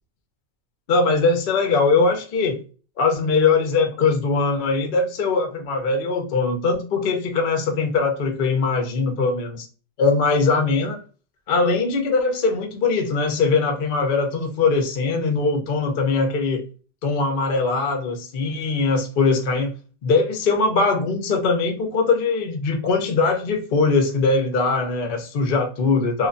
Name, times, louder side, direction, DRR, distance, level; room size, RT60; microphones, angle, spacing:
voice 1, 0.9-2.6 3.0-9.7 10.0-11.0 11.5-16.7 17.0-19.7 20.0-26.3, left 4 dB, 90° left, 0.4 m, -21 dB
3.0 x 2.2 x 2.6 m
omnidirectional pair, 1.9 m